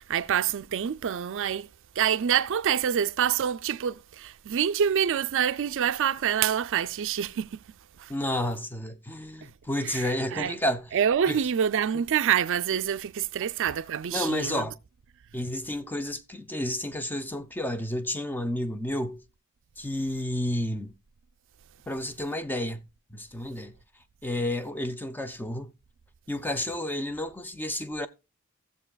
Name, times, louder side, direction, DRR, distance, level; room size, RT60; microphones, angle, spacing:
voice 1, 0.0-1.7 2.0-7.6 8.0-8.1 9.8-10.6 10.9-14.7, right 8 dB, 60° right, 0.4 m, -26 dB
voice 2, 8.1-10.9 11.3-11.4 14.1-14.8 15.3-19.2 19.8-20.9 21.9-22.8 23.1-23.7 24.2-25.7 26.3-28.1, left 1 dB, 10° left, 0.5 m, -31 dB
18.0 x 7.2 x 2.3 m
head